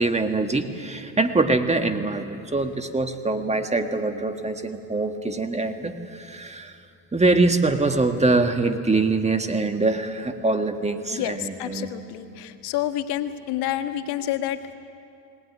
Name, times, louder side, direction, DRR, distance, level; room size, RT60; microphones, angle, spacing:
voice 1, 0.0-6.8 7.1-11.9, right 3 dB, 15° right, 6 dB, 1.8 m, -23 dB
voice 2, 11.1-14.7, left 12 dB, 65° left, 8 dB, 1.5 m, -29 dB
20.5 x 19.0 x 9.8 m, 2.5 s
supercardioid pair, 90°, 42 cm